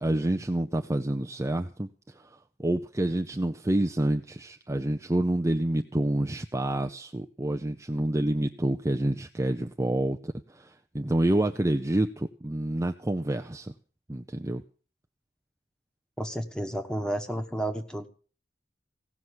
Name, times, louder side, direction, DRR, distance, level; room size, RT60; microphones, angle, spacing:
voice 1, 0.0-1.9 2.6-10.7 10.9-13.7 14.1-14.6, right 1 dB, 15° right, 5 dB, 0.6 m, -28 dB
voice 2, 16.2-18.1, right 1 dB, 5° left, 7 dB, 1.3 m, -31 dB
17.0 x 6.0 x 9.7 m, 0.40 s
head